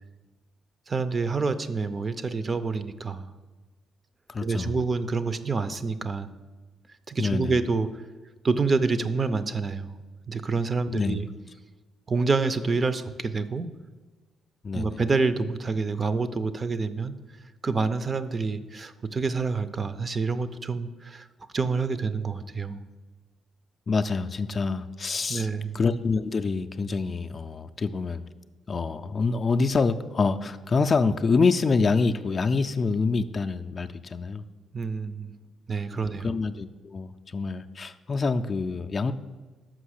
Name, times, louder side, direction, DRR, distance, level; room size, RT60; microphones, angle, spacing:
voice 1, 0.9-3.3 4.4-6.3 7.1-7.9 8.4-9.9 10.3-11.3 12.1-13.7 14.7-17.1 17.6-21.3 21.5-22.8 25.3-25.8 34.7-35.3 35.7-36.3, right 4 dB, 35° right, 12 dB, 0.5 m, -27 dB
voice 2, 4.3-4.8 7.2-7.6 10.9-11.2 14.6-15.0 23.9-25.5 25.7-28.2 28.7-34.4 35.9-39.1, left 4 dB, 40° left, 8 dB, 0.4 m, -26 dB
6.0 x 5.4 x 6.5 m, 1.3 s
cardioid pair, 90°, 0 cm